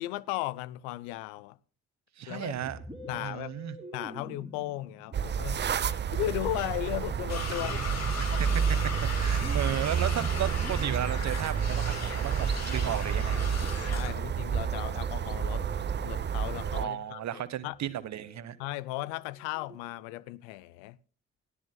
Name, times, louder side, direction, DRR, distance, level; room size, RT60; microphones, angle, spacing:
voice 1, 0.0-1.6 2.3-2.5 3.1-3.5 3.9-7.8 8.3-8.4 13.8-15.7 16.0-17.8 18.6-21.0, left 16 dB, 85° left, 0.5 m, -36 dB
voice 2, 2.2-2.8 3.1-3.8 8.3-8.5 9.0-13.5 16.8-18.6, right 11 dB, 60° right, 1.2 m, -34 dB
Musical instrument, 2.6-20.2, equal, 15° right, 2.6 m, -49 dB
sound 1, 5.1-16.8, right 7 dB, 35° right, 0.6 m, -30 dB
sound 2, 7.3-14.1, left 5 dB, 55° left, 2.6 m, -38 dB
19.5 x 12.5 x 2.2 m
hypercardioid pair, 45°, 31 cm